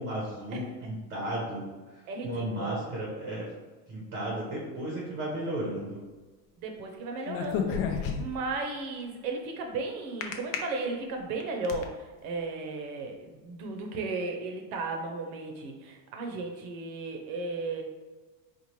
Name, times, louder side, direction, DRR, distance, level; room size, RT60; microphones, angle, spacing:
voice 1, 0.0-1.7 2.2-3.5 3.9-6.0, right 1 dB, 30° right, -3 dB, 0.8 m, -34 dB
voice 2, 2.1-2.9 6.6-17.8, right 3 dB, 65° right, 3 dB, 0.8 m, -35 dB
sound 1, 7.3-8.5 10.2-10.6 11.2-11.8, left 7 dB, 55° left, 0.6 m, -30 dB
4.3 x 2.4 x 3.0 m, 1.3 s
cardioid pair, 160°, 46 cm